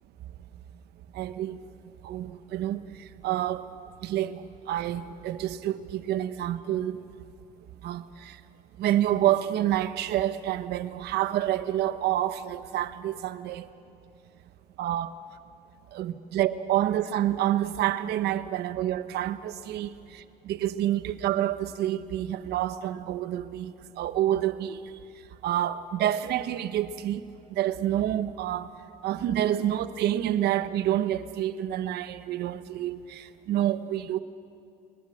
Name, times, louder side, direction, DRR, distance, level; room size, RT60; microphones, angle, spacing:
voice 1, 1.1-1.6 2.0-3.7 4.0-7.0 7.8-8.4 8.8-13.7 14.8-15.1 15.9-24.8 25.4-28.7 29.0-34.2, right 12 dB, 75° right, 1.1 m, -28 dB
30.0 x 21.0 x 6.5 m
cardioid pair, 110°, 17 cm